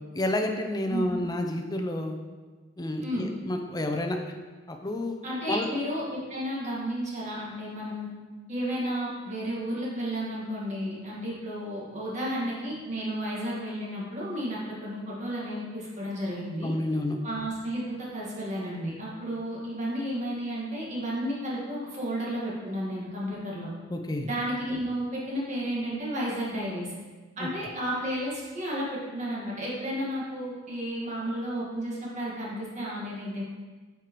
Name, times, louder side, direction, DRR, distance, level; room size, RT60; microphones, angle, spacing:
voice 1, 0.1-2.2 2.8-4.2 4.7-5.1 5.5-5.7 16.6-17.2 23.9-24.3 27.4-27.5, left 1 dB, 20° left, 4 dB, 0.5 m, -29 dB
voice 2, 5.2-8.1 8.5-16.7 17.2-23.7 24.2-26.9 27.4-33.4, equal, 35° right, -5 dB, 1.6 m, -32 dB
8.7 x 4.6 x 3.0 m, 1.4 s
head